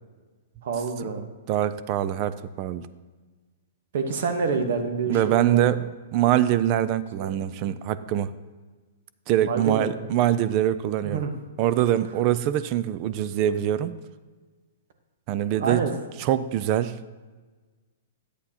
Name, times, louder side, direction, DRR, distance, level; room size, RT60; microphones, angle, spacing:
voice 1, 0.6-1.3 3.9-5.6 7.2-7.3 9.4-10.0 11.0-11.3 15.5-16.0, right 5 dB, 65° right, 7 dB, 1.1 m, -27 dB
voice 2, 1.5-2.9 5.1-8.3 9.3-11.2 11.6-13.9 15.3-15.8 16.2-17.0, right 12 dB, 40° right, 14 dB, 0.4 m, -24 dB
11.0 x 8.1 x 2.9 m, 1.4 s
hypercardioid pair, 130°, 0 cm